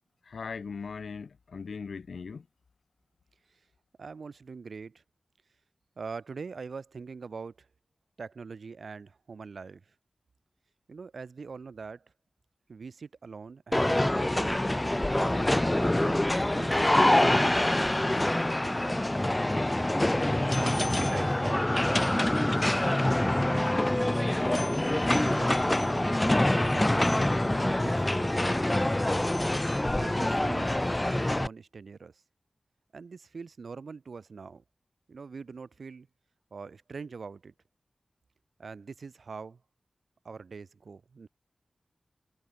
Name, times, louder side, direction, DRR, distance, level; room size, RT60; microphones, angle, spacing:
voice 1, 0.2-2.5, left 5 dB, 90° left, 1.7 m, -39 dB
voice 2, 4.0-5.0 6.0-7.7 8.2-9.9 10.9-12.1 12.7-14.7 15.0-19.0 20.5-24.4 25.1-28.8 29.9-30.7 31.0-32.2 32.9-34.6 35.1-36.1 36.5-37.5 38.6-39.6 40.2-41.3, right 5 dB, 75° right, 5.1 m, -43 dB
sound 1, 13.7-31.5, left 1 dB, 15° left, 1.3 m, -25 dB
wide cardioid pair, 85°, 0 cm